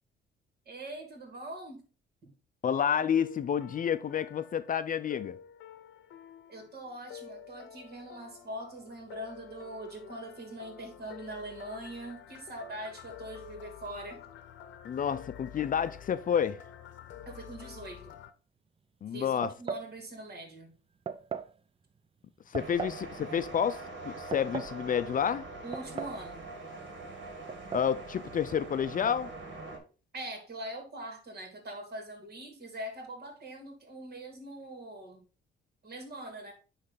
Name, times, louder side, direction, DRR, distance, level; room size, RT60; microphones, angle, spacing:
voice 1, 0.7-1.9 2.2-2.3 6.5-14.3 17.2-18.2 19.1-20.7 25.6-26.4 29.7-29.8 30.1-35.2 35.8-36.5, right 1 dB, 50° right, 2.7 m, -42 dB
voice 2, 2.6-5.4 14.8-16.6 19.0-19.5 22.5-25.4 27.7-29.3, left 8 dB, 45° left, 0.5 m, -29 dB
sound 1, 3.2-18.3, left 9 dB, 70° left, 0.8 m, -49 dB
sound 2, 19.4-19.9 21.1-21.5 22.5-23.0 24.1-24.8 25.7-26.3 26.5-26.6 27.5-27.9, right 5 dB, 30° right, 0.5 m, -38 dB
sound 3, 22.6-29.8, right 2 dB, 70° right, 2.2 m, -43 dB
9.6 x 3.3 x 4.0 m
cardioid pair, 90°, 20 cm